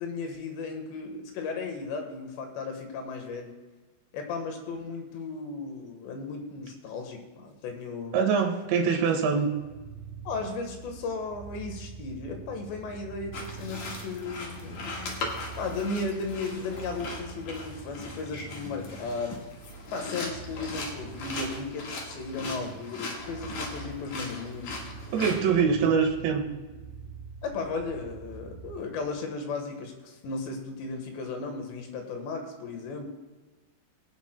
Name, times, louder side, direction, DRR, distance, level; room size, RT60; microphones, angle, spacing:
voice 1, 0.0-3.5 4.1-8.1 10.3-15.3 15.6-19.4 19.9-24.8 27.4-33.1, left 4 dB, 80° left, 3 dB, 3.6 m, -35 dB
voice 2, 8.1-9.5 25.1-26.5, right 6 dB, 85° right, 3 dB, 3.6 m, -24 dB
sound 1, 9.5-28.8, right 5 dB, 70° right, 2.7 m, -45 dB
sound 2, 13.3-25.4, left 2 dB, 55° left, 2.4 m, -39 dB
23.5 x 9.0 x 2.2 m, 1.2 s
omnidirectional pair, 5.0 m